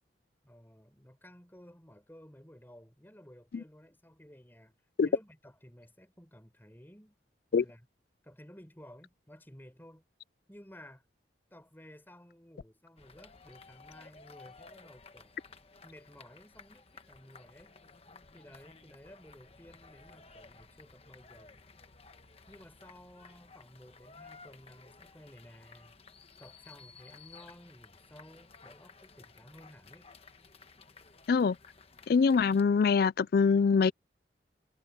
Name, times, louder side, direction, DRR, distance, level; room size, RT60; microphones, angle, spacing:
voice 1, 0.4-4.7 5.0-7.2 7.5-7.9 8.2-10.0 10.5-11.1 11.5-15.3 15.8-17.8 18.3-21.6 22.5-26.0 26.4-30.1, equal, 10° left, 4.5 m, -55 dB
sound 1, 13.0-32.6, left 4 dB, 35° left, 1.2 m, -56 dB
voice 2, 32.1-33.9, left 5 dB, 55° left, 0.3 m, -24 dB
head